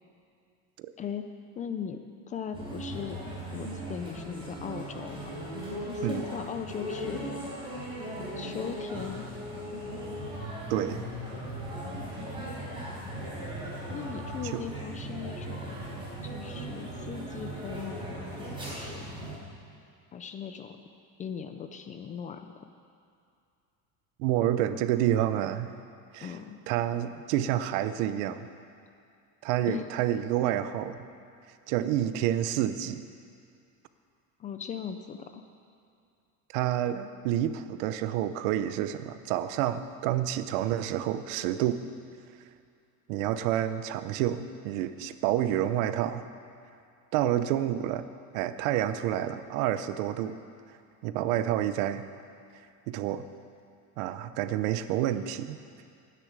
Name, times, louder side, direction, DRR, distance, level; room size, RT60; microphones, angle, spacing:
voice 1, 1.0-1.3 1.6-3.2 3.5-5.3 5.9-7.4 8.3-9.3 13.9-15.8 16.2-19.1 20.1-20.8 21.2-22.5 26.2-26.6 29.7-29.9 34.4-35.4, left 7 dB, 20° left, 7 dB, 0.3 m, -38 dB
sound 1, 2.5-19.4, right 1 dB, 15° right, 4.2 m, -38 dB
voice 2, 10.7-11.1 14.5-14.6 24.2-25.7 26.1-26.3 26.7-28.5 29.4-31.0 31.7-33.0 36.5-41.9 43.1-46.3 47.1-48.1 48.3-50.4 51.0-52.0 52.9-53.3 54.0-55.6, right 12 dB, 85° right, 12 dB, 0.9 m, -28 dB
12.0 x 10.0 x 8.3 m, 2.4 s
cardioid pair, 170°, 39 cm